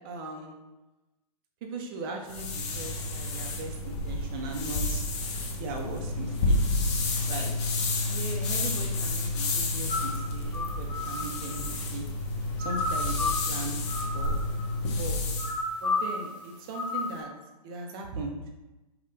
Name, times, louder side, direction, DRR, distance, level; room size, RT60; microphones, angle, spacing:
voice 1, 0.0-0.5 1.6-5.0 5.6-6.6 7.3-7.5 8.1-12.0 12.6-13.8 14.1-14.4 15.0-15.2 15.8-17.3 17.6-18.3, right 3 dB, 35° right, 2 dB, 0.5 m, -38 dB
sound 1, 2.3-15.6, left 2 dB, 45° left, 0.6 m, -30 dB
sound 2, 9.9-11.7 12.6-13.6 13.8-14.7 15.4-16.4 16.7-17.2, left 3 dB, 75° left, 0.9 m, -32 dB
2.6 x 2.3 x 3.5 m, 1.1 s
figure-of-eight pair, 115°, 20 cm